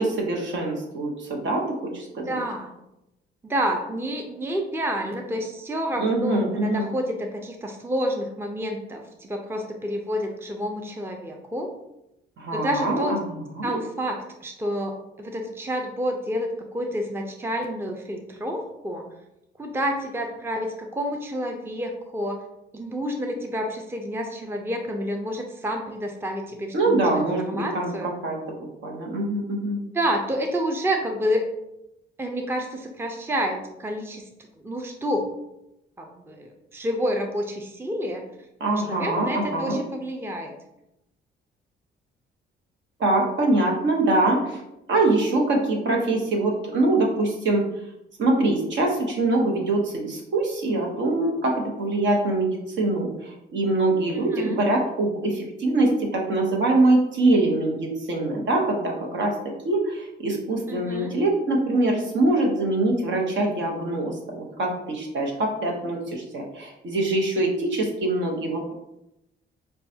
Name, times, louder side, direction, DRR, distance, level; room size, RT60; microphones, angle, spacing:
voice 1, 0.0-2.4 6.0-6.9 12.4-13.2 13.6-13.8 26.7-27.9 28.2-28.6 28.8-29.8 38.6-39.8 43.0-44.6 44.9-47.7 48.2-68.7, right 2 dB, 65° right, 0 dB, 1.0 m, -24 dB
voice 2, 2.3-2.7 3.4-11.7 12.5-13.2 13.6-14.2 14.4-19.1 19.6-22.4 22.7-28.1 29.9-31.5 32.2-34.2 34.6-35.2 36.0-38.2 38.9-40.5 54.1-54.6 60.7-61.1, equal, 10° right, 2 dB, 0.5 m, -29 dB
5.4 x 2.3 x 2.7 m, 0.86 s
cardioid pair, 90°, 20 cm